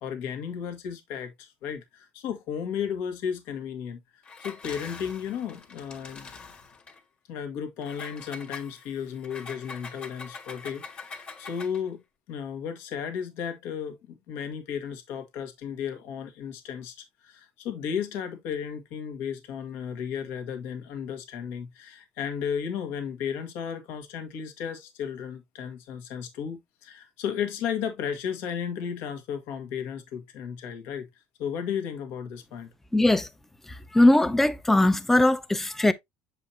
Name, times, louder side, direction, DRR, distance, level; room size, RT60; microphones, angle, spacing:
voice 1, 0.0-4.0 4.4-6.3 7.3-12.0 12.3-31.1 31.4-32.7, left 7 dB, 70° left, 1.7 m, -34 dB
Engine, 4.2-7.0 7.8-11.9, left 4 dB, 30° left, 1.6 m, -44 dB
voice 2, 32.9-33.3 33.9-35.9, left 1 dB, 10° left, 0.6 m, -20 dB
7.3 x 5.0 x 2.8 m
cardioid pair, 130°, 4 cm